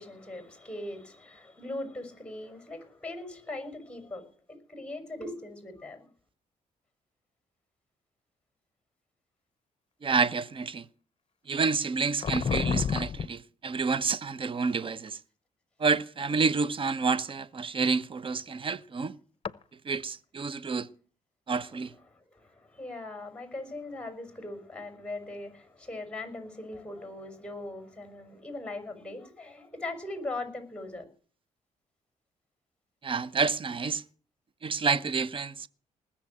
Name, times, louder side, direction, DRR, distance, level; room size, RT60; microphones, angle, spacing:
voice 1, 0.0-4.3 4.7-6.0 21.6-31.0, left 2 dB, 5° left, 6.0 m, -40 dB
voice 2, 10.0-10.8 11.5-15.2 15.8-19.1 19.9-20.9 21.5-21.9 33.0-34.0 34.6-35.7, right 4 dB, 40° right, 0.9 m, -29 dB
sound 1, 12.2-13.3 14.8-15.1 17.0-17.3 19.5-19.6, left 7 dB, 40° left, 0.8 m, -29 dB
19.5 x 7.4 x 8.8 m
cardioid pair, 70°, 14 cm